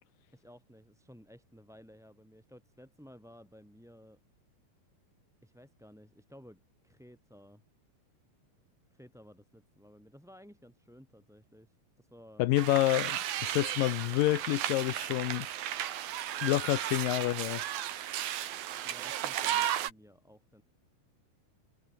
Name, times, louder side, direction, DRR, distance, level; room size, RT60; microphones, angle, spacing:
voice 1, 0.3-4.2 5.4-7.6 8.9-12.5 18.8-20.6, equal, ahead, 7.5 m, -56 dB
voice 2, 12.4-15.5 16.4-17.6, left 16 dB, 75° left, 2.2 m, -28 dB
sound 1, 12.6-19.9, right 11 dB, 70° right, 3.4 m, -34 dB
omnidirectional pair, 4.4 m